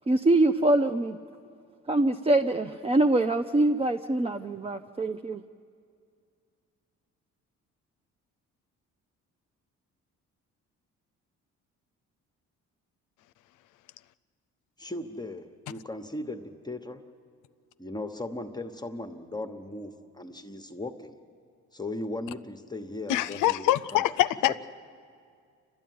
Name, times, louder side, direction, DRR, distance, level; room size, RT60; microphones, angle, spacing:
voice 1, 0.1-1.2 1.9-5.4, right 2 dB, 20° right, 7 dB, 0.6 m, -24 dB
voice 2, 14.8-17.0 17.8-21.1 21.7-24.1, left 2 dB, 15° left, 4 dB, 1.1 m, -37 dB
voice 3, 23.1-24.6, left 14 dB, 85° left, 12 dB, 0.6 m, -24 dB
28.0 x 12.5 x 9.4 m, 2.2 s
cardioid pair, 90°, 30 cm